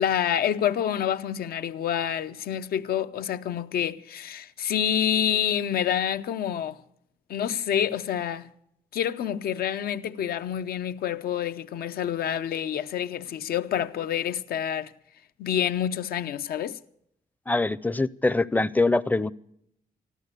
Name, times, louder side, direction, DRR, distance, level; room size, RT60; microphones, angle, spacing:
voice 1, 0.0-6.8 7.3-8.5 8.9-14.9 15.4-16.8, left 9 dB, 80° left, 0.7 m, -27 dB
voice 2, 17.5-19.3, left 2 dB, 10° left, 0.5 m, -23 dB
14.5 x 13.0 x 6.6 m
cardioid pair, 115°, 15 cm